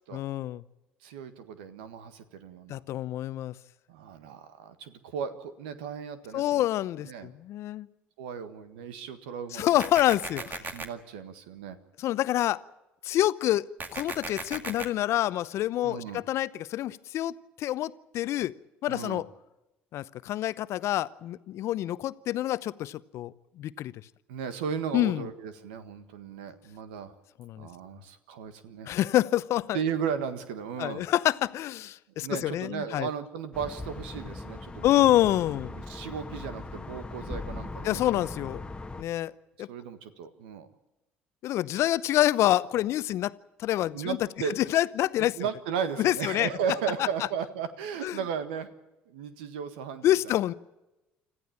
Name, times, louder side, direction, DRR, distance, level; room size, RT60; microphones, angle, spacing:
voice 1, 0.1-0.6 2.7-3.5 6.3-7.9 9.5-10.6 12.0-12.6 13.0-13.7 13.9-18.5 18.8-19.3 19.9-23.9 24.9-25.3 27.4-27.7 28.8-29.8 30.8-33.1 34.8-35.7 37.8-38.6 39.0-39.3 39.6-39.7 41.4-43.3 43.6-44.2 44.6-45.4 46.0-46.5 47.0-47.1 48.0-48.2 50.0-50.5, left 14 dB, 60° left, 17 dB, 0.8 m, -27 dB
voice 2, 1.0-2.8 3.9-6.6 7.0-7.3 8.2-9.8 10.6-11.8 15.8-16.2 18.9-19.2 24.3-27.1 27.6-28.9 29.7-31.0 32.1-35.1 35.8-38.2 39.7-40.7 43.9-44.6 45.4-48.7 49.1-50.3, right 7 dB, 80° right, 11 dB, 1.6 m, -35 dB
sound 1, 9.8-10.8 13.8-14.8, right 4 dB, 35° right, 2.2 m, -36 dB
sound 2, 33.5-39.0, left 2 dB, 15° left, 1.5 m, -39 dB
26.0 x 14.5 x 8.6 m, 1.0 s
hypercardioid pair, 65°, 5 cm